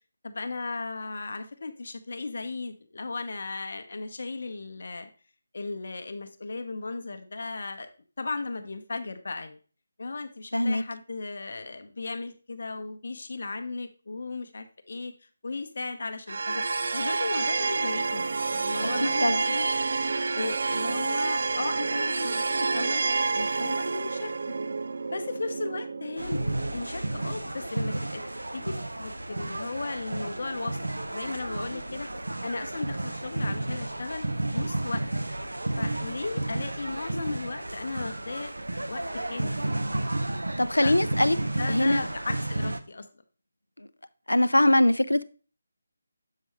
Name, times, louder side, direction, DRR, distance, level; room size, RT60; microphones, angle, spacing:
voice 1, 0.2-5.1 5.5-7.9 8.2-9.6 10.0-15.1 15.4-16.6 16.9-19.7 20.3-23.0 23.3-24.3 25.1-28.2 28.5-30.8 31.1-32.1 32.4-34.3 34.5-35.0 35.8-38.5 38.9-39.6 40.8-40.9 41.6-43.1, left 3 dB, 55° left, 0.8 m, -36 dB
voice 2, 10.5-10.8 19.0-19.4 40.6-41.4 41.7-42.1 44.3-45.2, left 1 dB, 80° left, 0.5 m, -22 dB
sound 1, 16.3-27.3, right 3 dB, 50° right, 0.3 m, -29 dB
sound 2, 26.2-42.8, right 1 dB, 70° right, 0.7 m, -32 dB
7.5 x 5.4 x 3.1 m
figure-of-eight pair, 155°, 0 cm